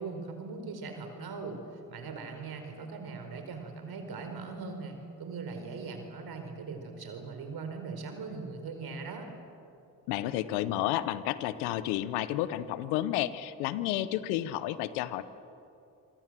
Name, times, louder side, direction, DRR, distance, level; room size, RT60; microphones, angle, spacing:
voice 1, 0.0-1.6 1.9-9.3, right 4 dB, 65° right, 5 dB, 4.8 m, -40 dB
voice 2, 10.1-15.2, left 13 dB, 90° left, 14 dB, 1.0 m, -31 dB
27.0 x 23.5 x 7.6 m, 2.6 s
hypercardioid pair, 50°, 40 cm